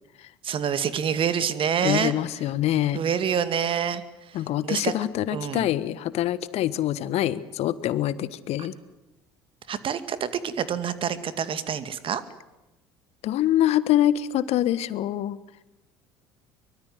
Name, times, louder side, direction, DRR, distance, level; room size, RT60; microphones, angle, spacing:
voice 1, 0.4-2.1 2.9-4.0 4.3-4.4 4.6-4.9 5.3-5.7 9.7-12.2, right 8 dB, 45° right, 12 dB, 2.2 m, -26 dB
voice 2, 1.8-3.0 4.3-8.7 13.2-15.4, left 12 dB, 55° left, 16 dB, 1.3 m, -25 dB
24.0 x 23.0 x 7.8 m, 0.98 s
hypercardioid pair, 65°, 13 cm